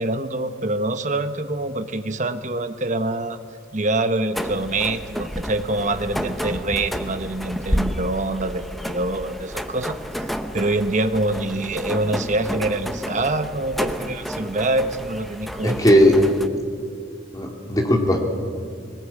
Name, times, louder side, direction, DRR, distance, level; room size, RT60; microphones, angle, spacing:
voice 1, 0.0-3.4 3.7-16.1, right 2 dB, 40° right, 9 dB, 1.2 m, -25 dB
sound 1, 4.3-16.5, equal, ahead, 0.9 m, -31 dB
voice 2, 15.6-16.1 17.3-18.3, equal, 20° left, 1 dB, 3.0 m, -17 dB
22.0 x 19.5 x 8.6 m, 2.3 s
head